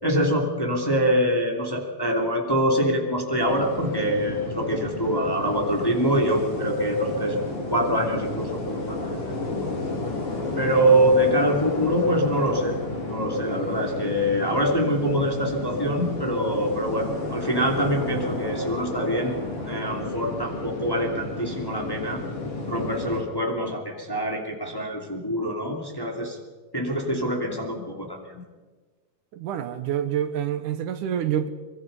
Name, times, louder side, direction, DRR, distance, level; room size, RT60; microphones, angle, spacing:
voice 1, 0.0-7.4 7.7-9.7 10.6-12.8 13.1-22.2 22.7-26.4 26.7-28.4, equal, 10° left, 2.3 m, -24 dB
sound 1, 3.4-23.2, left 2 dB, 45° left, 4.3 m, -32 dB
voice 2, 29.3-31.5, right 10 dB, 75° right, 2.6 m, -27 dB
24.0 x 23.0 x 5.5 m
omnidirectional pair, 3.7 m